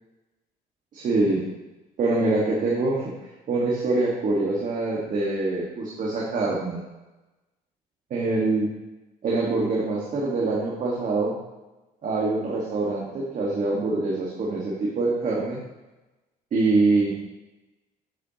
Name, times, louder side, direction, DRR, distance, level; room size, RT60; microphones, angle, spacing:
voice 1, 0.9-1.4 2.0-3.1 3.5-6.8 8.1-8.7 9.2-11.4 12.0-15.6 16.5-17.1, right 3 dB, 50° right, -4 dB, 1.6 m, -24 dB
8.3 x 7.8 x 2.9 m, 1.1 s
cardioid pair, 110°, 17 cm